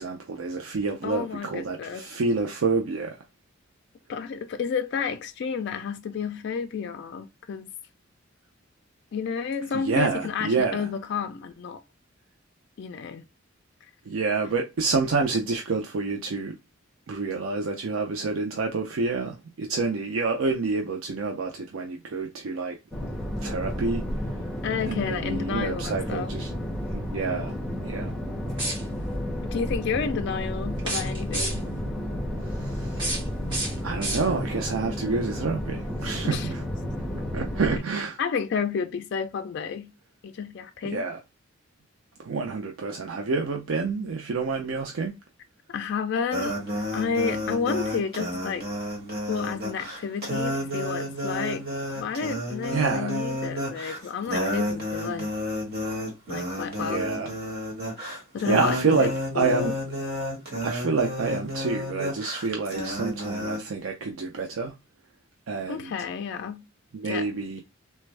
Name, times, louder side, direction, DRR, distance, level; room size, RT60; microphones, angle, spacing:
voice 1, 0.0-3.2 9.7-10.9 14.1-16.5 17.1-22.8 23.4-24.0 24.8-26.5 26.9-27.6 27.8-28.1 32.4-33.2 33.8-36.6 37.1-38.2 40.8-41.2 42.2-45.1 52.7-53.2 56.8-57.3 58.5-59.7 60.6-64.7 65.5-65.9 66.9-67.6, right 4 dB, 80° right, 0.5 m, -28 dB
voice 2, 1.0-2.1 4.1-7.7 9.1-11.8 12.8-13.2 24.6-26.3 29.4-31.7 36.2-36.5 38.2-39.9 40.2-41.1 45.7-46.6 46.9-48.7 49.3-51.7 52.0-55.3 56.3-57.1 58.3-59.1 59.4-59.7 65.7-66.7 67.0-67.3, left 6 dB, 60° left, 0.3 m, -31 dB
sound 1, 22.9-37.8, equal, 5° left, 1.0 m, -32 dB
sound 2, 28.5-29.2 30.7-31.8 32.8-34.6, right 1 dB, 25° right, 1.4 m, -32 dB
sound 3, 46.3-63.6, equal, 50° right, 1.4 m, -31 dB
3.3 x 2.2 x 3.2 m
head